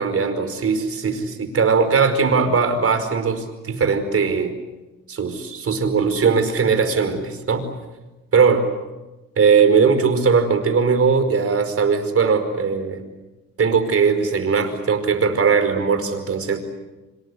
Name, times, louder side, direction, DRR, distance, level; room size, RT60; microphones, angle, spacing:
voice 1, 0.0-4.5 5.1-7.7 8.3-8.7 9.4-13.0 13.6-16.6, right 5 dB, 50° right, 9 dB, 5.1 m, -19 dB
26.5 x 26.5 x 8.2 m, 1.1 s
cardioid pair, 90°, 30 cm